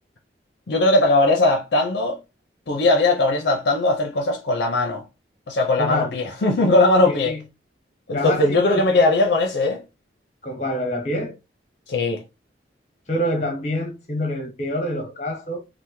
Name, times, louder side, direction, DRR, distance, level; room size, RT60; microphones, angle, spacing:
voice 1, 0.7-2.2 2.7-5.0 5.5-7.4 8.1-9.8 11.9-12.2, left 2 dB, 70° left, 0.5 m, -19 dB
voice 2, 5.8-6.1 7.1-7.4 8.1-9.1 10.4-11.3 13.1-15.6, left 1 dB, 40° left, 0.9 m, -26 dB
3.3 x 2.1 x 3.0 m
head